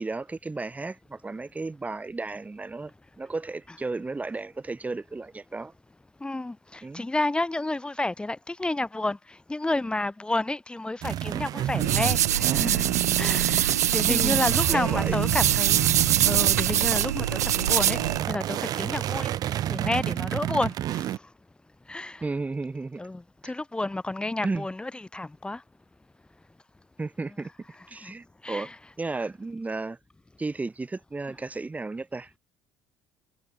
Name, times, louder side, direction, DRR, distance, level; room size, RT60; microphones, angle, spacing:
voice 1, 0.0-2.9 3.2-5.7 6.8-7.1 14.1-14.5 14.7-15.2 22.2-23.0 23.4-23.5 24.4-24.7 27.0-27.5 27.9-28.7 29.0-30.0 30.4-32.3, right 3 dB, 15° right, 6.0 m, -33 dB
voice 2, 6.2-9.2 9.5-12.8 13.2-15.8 16.2-18.0 18.3-19.3 19.7-21.1 21.9-22.2 23.0-25.6 28.0-28.1 28.4-28.7, left 2 dB, 10° left, 1.4 m, -30 dB
sound 1, 11.0-21.2, right 12 dB, 45° right, 2.2 m, -30 dB
sound 2, 11.8-18.2, right 11 dB, 75° right, 1.0 m, -24 dB
figure-of-eight pair, 60°, 9 cm